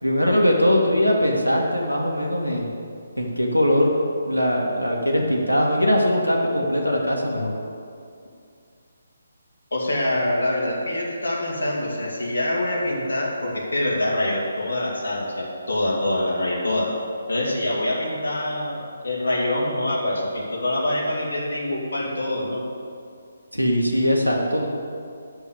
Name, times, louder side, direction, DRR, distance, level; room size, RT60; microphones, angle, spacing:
voice 1, 0.0-2.7 3.2-7.5 23.5-24.7, equal, 90° left, -1 dB, 1.8 m, -21 dB
voice 2, 9.7-16.9 17.3-22.6, left 1 dB, 60° left, -4 dB, 2.5 m, -25 dB
8.1 x 6.7 x 8.2 m, 2.4 s
figure-of-eight pair, 145°, 0 cm